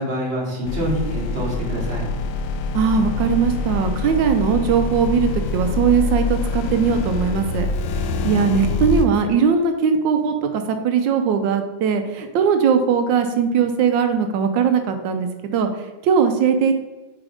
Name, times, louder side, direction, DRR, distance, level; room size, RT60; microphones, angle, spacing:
voice 1, 0.0-2.1 7.9-8.3, right 1 dB, 35° right, -3 dB, 1.6 m, -26 dB
sound 1, 0.6-9.1, left 4 dB, 75° left, 1.1 m, -25 dB
voice 2, 2.7-7.7 8.0-16.7, right 6 dB, 85° right, 7 dB, 1.3 m, -20 dB
4.8 x 4.2 x 4.9 m, 1.1 s
omnidirectional pair, 1.9 m